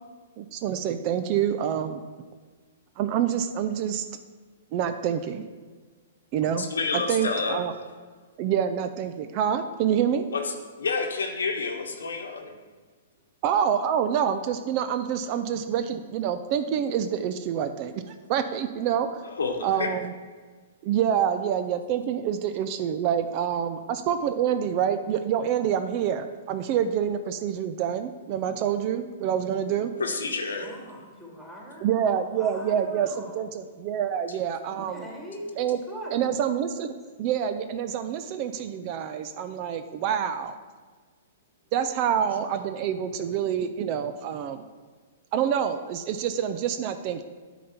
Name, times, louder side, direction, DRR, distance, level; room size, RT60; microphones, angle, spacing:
voice 1, 0.4-2.0 3.0-4.0 4.7-5.5 6.3-6.7 6.9-7.7 8.4-10.2 13.4-19.3 19.6-20.1 20.8-29.9 31.8-35.1 35.6-35.8 36.1-40.5 41.7-44.7 45.3-47.2, right 9 dB, 40° right, 9 dB, 0.5 m, -27 dB
voice 2, 6.6-7.6 10.3-12.5 19.2-19.9 30.0-30.7, left 4 dB, 85° left, 3 dB, 1.1 m, -29 dB
voice 3, 30.5-33.5 34.7-35.6 35.9-36.2, equal, 5° right, -4 dB, 2.3 m, -41 dB
9.2 x 4.0 x 5.8 m, 1.4 s
hypercardioid pair, 125°, 0 cm